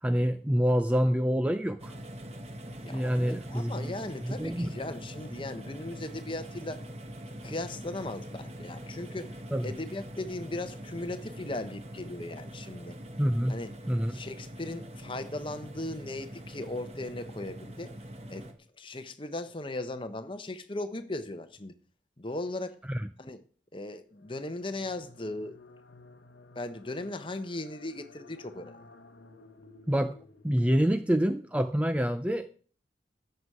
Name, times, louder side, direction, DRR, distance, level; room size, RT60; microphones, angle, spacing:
voice 1, 0.0-1.9 2.8-4.7 9.5-9.7 13.2-13.6 13.9-14.2 22.9-23.1 29.9-30.2 30.4-32.5, equal, 5° right, 0.4 m, -27 dB
sound 1, 1.8-18.5, equal, 35° right, 1.3 m, -43 dB
voice 2, 2.8-6.9 7.4-13.0 13.5-13.7 14.1-17.9 18.3-18.5 18.8-21.7 22.2-22.8 23.2-23.4 23.7-25.6 26.5-28.8, left 2 dB, 30° left, 1.0 m, -38 dB
sound 2, 24.1-31.0, left 3 dB, 65° left, 1.0 m, -54 dB
13.5 x 7.9 x 4.8 m
head